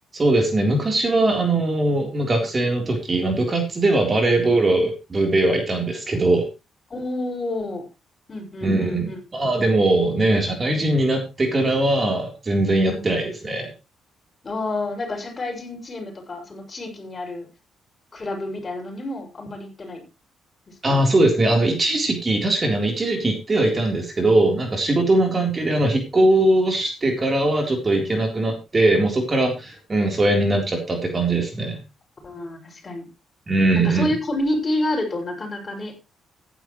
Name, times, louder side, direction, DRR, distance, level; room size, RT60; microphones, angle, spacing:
voice 1, 0.1-6.5 8.6-13.7 20.8-31.8 33.5-34.1, right 2 dB, 30° right, 2 dB, 3.8 m, -20 dB
voice 2, 6.9-7.8 8.3-9.2 12.8-13.0 14.4-17.5 18.1-20.0 20.7-21.0 32.2-33.1 33.7-35.9, left 1 dB, 30° left, 2 dB, 6.5 m, -29 dB
15.0 x 11.0 x 3.2 m, 0.28 s
cardioid pair, 90°, 0 cm